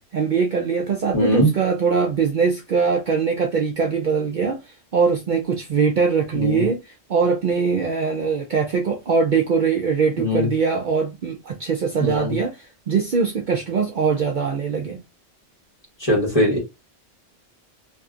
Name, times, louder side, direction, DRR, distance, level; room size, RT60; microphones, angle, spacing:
voice 1, 0.1-4.6 4.9-15.0, right 5 dB, 60° right, 0.6 m, -22 dB
voice 2, 1.1-1.5 6.3-6.6 10.2-10.5 12.0-12.4 16.0-16.6, equal, 30° left, 1.4 m, -20 dB
2.7 x 2.7 x 2.4 m
omnidirectional pair, 1.1 m